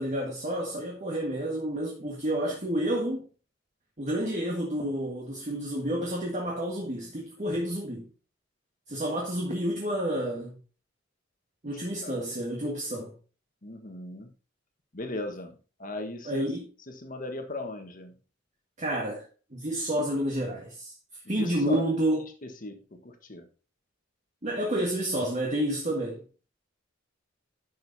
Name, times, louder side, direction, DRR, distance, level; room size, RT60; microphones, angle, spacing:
voice 1, 0.0-3.2 4.0-8.1 8.9-10.6 11.6-13.1 16.2-16.7 18.8-19.3 19.5-20.9 21.3-22.3 24.4-26.2, right 1 dB, 40° right, 1.7 m, -30 dB
voice 2, 13.6-14.3 14.9-15.5 15.8-16.5 17.0-18.1 21.4-21.8 22.6-22.8 23.3-23.4, left 2 dB, 45° left, 1.4 m, -36 dB
11.0 x 6.4 x 2.7 m
head